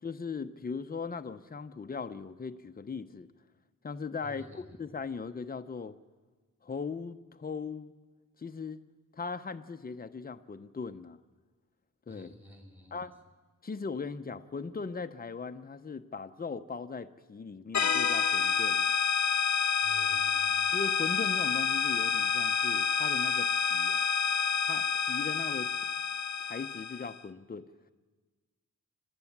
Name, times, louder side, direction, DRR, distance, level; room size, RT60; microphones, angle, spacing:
voice 1, 0.0-3.3 3.8-6.0 6.6-7.9 8.4-8.8 9.1-11.2 12.1-12.3 12.9-13.2 13.6-19.0 20.7-24.0 24.7-25.9 26.4-27.7, left 5 dB, 25° left, 9 dB, 0.7 m, -39 dB
voice 2, 4.2-4.8 12.1-13.1 19.8-20.8, equal, 5° right, 3 dB, 2.8 m, -52 dB
sound 1, 17.7-27.1, left 7 dB, 55° left, 0.9 m, -28 dB
27.0 x 13.5 x 7.3 m, 1.3 s
wide cardioid pair, 140°, 33 cm